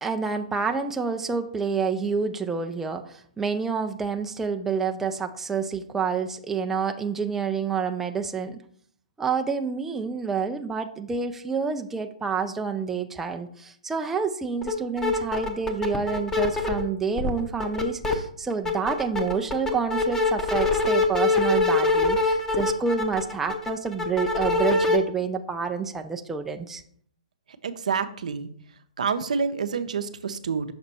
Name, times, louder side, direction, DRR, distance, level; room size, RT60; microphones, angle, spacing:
voice 1, 0.0-8.6 9.2-26.8, right 5 dB, 5° right, 4 dB, 0.3 m, -28 dB
sound 1, 14.6-14.7 15.0-16.8 17.2-18.1 18.5-25.0, left 3 dB, 10° left, 0.7 m, -24 dB
voice 2, 27.6-28.5 29.0-30.7, right 5 dB, 75° right, 10 dB, 0.6 m, -28 dB
6.0 x 4.3 x 4.0 m, 0.62 s
hypercardioid pair, 135°, 4 cm